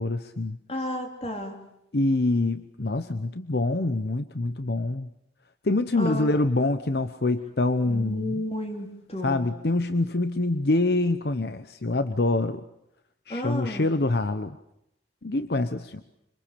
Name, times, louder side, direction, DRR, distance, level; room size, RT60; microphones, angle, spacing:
voice 1, 0.0-0.6 1.9-5.1 5.6-8.4 9.2-12.6 13.3-14.6 15.2-16.0, left 2 dB, 60° left, 11 dB, 0.9 m, -25 dB
voice 2, 0.7-1.7 6.0-6.3 7.9-9.5 13.3-13.9, left 1 dB, 35° left, 3 dB, 3.6 m, -32 dB
25.5 x 25.5 x 6.9 m, 0.80 s
head